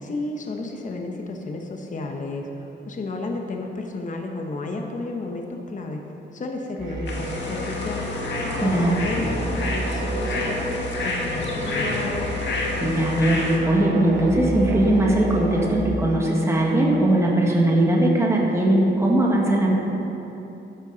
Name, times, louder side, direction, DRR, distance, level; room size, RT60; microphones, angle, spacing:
voice 1, 0.0-6.0 6.3-8.0 8.4-12.1, left 2 dB, 40° left, 2 dB, 1.0 m, -32 dB
sound 1, 6.8-15.7, equal, 70° right, 2.9 m, -31 dB
sound 2, 7.1-13.6, left 2 dB, 65° left, 1.9 m, -29 dB
voice 2, 8.6-8.9 12.8-19.7, right 1 dB, 15° right, -3 dB, 1.6 m, -20 dB
12.5 x 10.0 x 4.0 m, 3.0 s
wide cardioid pair, 125°, 20 cm